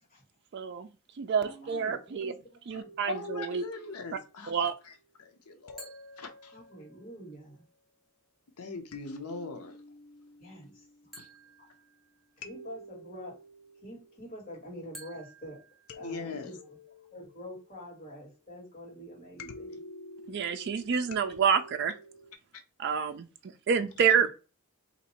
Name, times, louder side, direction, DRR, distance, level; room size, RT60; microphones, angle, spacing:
voice 1, 0.5-0.9 1.2-2.3 2.7-3.6 4.5-4.7 20.3-21.9 22.8-24.3, right 7 dB, 50° right, 0.3 m, -28 dB
voice 2, 1.4-2.9 6.5-7.6 10.4-10.8 12.4-13.4 13.8-15.6 15.9-16.8 17.1-19.8 24.1-24.2, equal, 35° left, 2.0 m, -46 dB
sound 1, 2.8-4.9 5.7-7.2 8.9-11.8 12.4-15.0 15.9-18.1 19.4-22.3, left 1 dB, 70° left, 0.5 m, -50 dB
voice 3, 3.0-4.9 5.2-5.9 6.2-6.5 8.6-9.8 11.2-11.3 16.0-16.5, left 3 dB, 90° left, 0.8 m, -40 dB
sound 2, 5.8-7.1 11.1-12.7 14.9-16.6, right 1 dB, ahead, 0.7 m, -53 dB
2.8 x 2.6 x 4.2 m
head